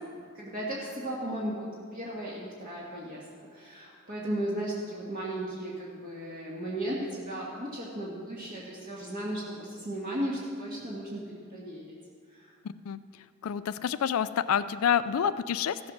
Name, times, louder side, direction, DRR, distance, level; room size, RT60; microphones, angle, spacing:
voice 1, 0.1-3.2 3.5-12.0 12.3-12.6, right 1 dB, 40° right, -6 dB, 1.7 m, -35 dB
voice 2, 13.4-15.9, left 8 dB, 90° left, 13 dB, 0.4 m, -28 dB
15.0 x 7.2 x 6.1 m, 2.1 s
head